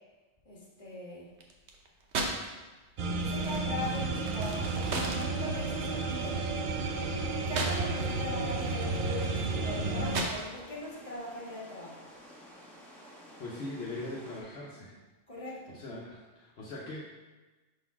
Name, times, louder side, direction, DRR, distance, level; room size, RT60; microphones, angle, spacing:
voice 1, 0.4-1.3 3.2-6.4 7.4-11.9 15.3-15.7, left 1 dB, 30° left, -5 dB, 1.7 m, -40 dB
sound 1, 1.3-2.5 2.8-8.2 8.5-10.8, right 3 dB, 70° right, 1.1 m, -37 dB
sound 2, 3.0-10.2, right 3 dB, 55° right, 0.6 m, -32 dB
sound 3, 3.8-14.4, equal, ahead, 1.3 m, -52 dB
voice 2, 13.4-15.0 15.7-17.1, left 2 dB, 65° left, -4 dB, 1.1 m, -41 dB
5.3 x 4.0 x 5.8 m, 1.2 s
omnidirectional pair, 1.2 m